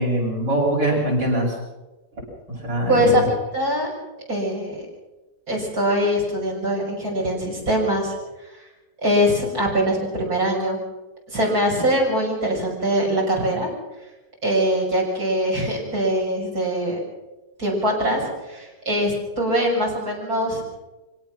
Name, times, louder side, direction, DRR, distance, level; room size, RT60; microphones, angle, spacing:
voice 1, 0.0-1.5 2.6-3.2, right 1 dB, 85° right, -1 dB, 8.9 m, -22 dB
voice 2, 2.9-3.2 3.5-3.9 4.3-4.8 5.5-8.2 9.0-10.8 11.3-13.7 14.4-17.0 17.6-20.6, equal, 55° right, -1 dB, 7.1 m, -22 dB
24.5 x 17.5 x 6.2 m, 1.1 s
omnidirectional pair, 1.9 m